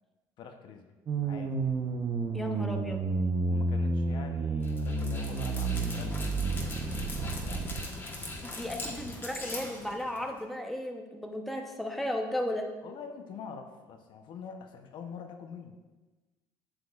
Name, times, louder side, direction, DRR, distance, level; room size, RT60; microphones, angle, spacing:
voice 1, 0.4-0.9 1.2-1.7 3.5-7.7 12.8-15.8, left 6 dB, 60° left, 5 dB, 0.7 m, -46 dB
sound 1, 1.1-7.8, right 3 dB, 40° right, 0.7 m, -31 dB
voice 2, 2.3-3.0 8.4-12.7, left 1 dB, ahead, 3 dB, 0.8 m, -35 dB
Dog, 4.6-10.4, left 2 dB, 25° left, 1.3 m, -41 dB
7.8 x 6.9 x 2.4 m, 1.2 s
supercardioid pair, 95°, 9 cm